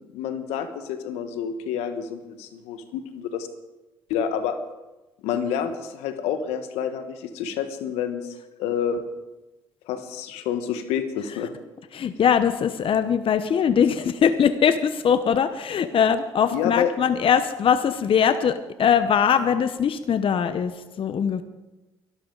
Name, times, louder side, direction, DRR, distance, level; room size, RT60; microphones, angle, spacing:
voice 1, 0.1-3.5 4.1-4.6 5.2-8.3 8.6-9.0 9.8-11.5 16.5-16.9, left 8 dB, 85° left, 9 dB, 1.3 m, -28 dB
voice 2, 11.9-21.4, left 7 dB, 55° left, 10 dB, 1.0 m, -21 dB
23.5 x 12.5 x 4.0 m, 1.1 s
hypercardioid pair, 50°, 11 cm